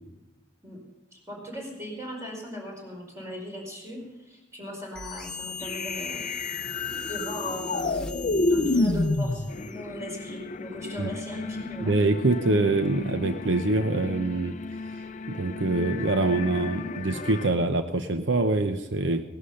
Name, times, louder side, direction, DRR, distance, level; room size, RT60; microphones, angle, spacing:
voice 1, 1.1-6.3 7.1-12.0, equal, 15° right, -1 dB, 4.9 m, -38 dB
sound 1, 4.9-9.8, left 4 dB, 5° left, 1.4 m, -38 dB
sound 2, 5.6-17.5, left 2 dB, 40° left, 0.6 m, -31 dB
voice 2, 11.8-14.6 15.3-19.2, right 2 dB, 70° right, 8 dB, 0.8 m, -25 dB
18.0 x 11.5 x 5.7 m, 1.0 s
head